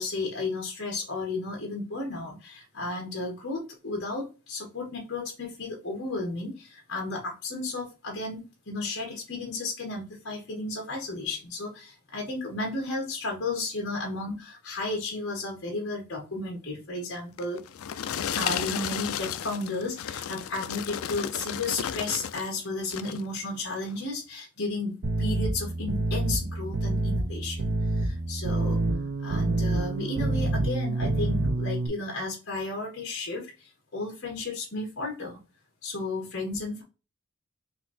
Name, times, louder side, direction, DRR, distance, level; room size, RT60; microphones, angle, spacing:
voice 1, 0.0-17.6 18.3-27.7 28.0-28.8 29.2-33.4 33.9-35.4 35.8-36.8, left 2 dB, 55° left, 0 dB, 1.3 m, -33 dB
sound 1, 17.4-22.5 22.8-23.3 23.8-24.0, left 9 dB, 80° left, 0.4 m, -33 dB
sound 2, 25.0-31.9, right 2 dB, 55° right, 0.6 m, -27 dB
4.0 x 2.7 x 4.2 m, 0.31 s
head